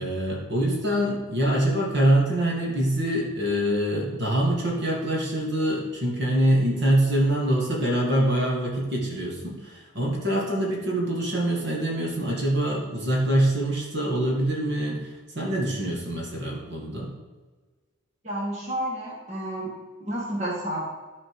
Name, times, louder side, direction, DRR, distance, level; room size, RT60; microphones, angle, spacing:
voice 1, 0.0-17.1, right 1 dB, 55° right, -2 dB, 2.0 m, -24 dB
voice 2, 18.2-19.7 20.0-20.8, right 1 dB, 35° right, -5 dB, 1.8 m, -30 dB
12.5 x 4.4 x 4.9 m, 1.3 s
head